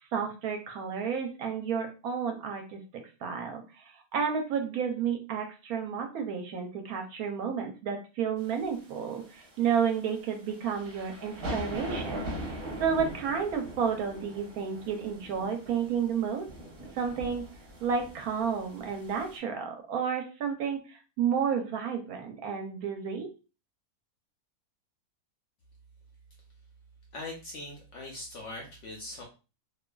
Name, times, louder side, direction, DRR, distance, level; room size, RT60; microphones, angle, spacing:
voice 1, 0.1-2.8 3.2-16.5 16.9-17.5 17.8-23.3, right 7 dB, 70° right, 4 dB, 1.0 m, -31 dB
sound 1, 8.4-19.4, right 1 dB, 45° right, 0.9 m, -41 dB
voice 2, 27.1-29.2, left 2 dB, 65° left, -1 dB, 0.8 m, -41 dB
2.5 x 2.3 x 2.2 m, 0.32 s
omnidirectional pair, 1.7 m